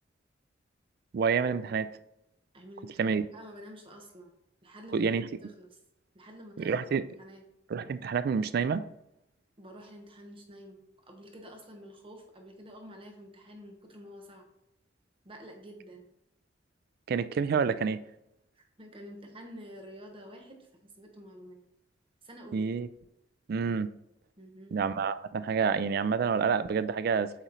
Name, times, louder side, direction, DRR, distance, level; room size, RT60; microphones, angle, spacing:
voice 1, 1.1-1.9 3.0-3.2 4.9-5.3 6.6-7.0 7.7-8.8 17.1-18.0 22.5-22.9 23.5-23.9 24.7-27.3, right 6 dB, 55° right, 0.3 m, -28 dB
voice 2, 2.5-4.3 4.6-5.1 5.4-5.8 6.1-7.4 9.6-14.4 15.2-16.1 18.5-21.6 22.2-22.6 24.4-24.8, equal, 30° right, 1.0 m, -49 dB
8.0 x 3.1 x 4.0 m
head